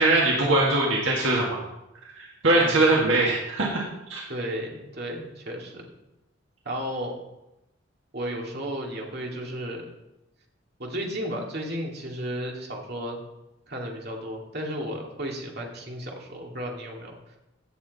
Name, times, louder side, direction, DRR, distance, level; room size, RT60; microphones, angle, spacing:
voice 1, 0.0-1.6 2.2-3.8 4.1-4.2, right 2 dB, 70° right, -3 dB, 1.8 m, -21 dB
voice 2, 2.5-3.0 4.3-5.8 6.6-7.2 8.1-9.9 10.8-13.2 13.7-17.4, equal, 50° right, 0 dB, 2.3 m, -33 dB
16.5 x 7.5 x 4.1 m, 0.94 s
head